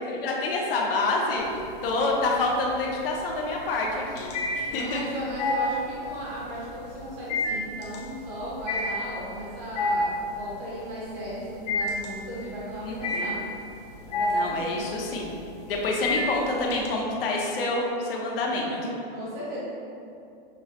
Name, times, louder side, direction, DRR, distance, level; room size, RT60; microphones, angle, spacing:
voice 1, 0.0-5.0 12.8-13.4 14.3-15.3 15.7-18.7, left 2 dB, 70° left, -1 dB, 0.8 m, -27 dB
sound 1, 1.4-2.0 2.4-16.9, left 2 dB, 45° left, 0.5 m, -29 dB
voice 2, 4.7-13.4 14.0-14.8 18.7-19.6, equal, 20° right, -8 dB, 0.7 m, -36 dB
6.2 x 2.1 x 2.8 m, 2.6 s
supercardioid pair, 175°, 29 cm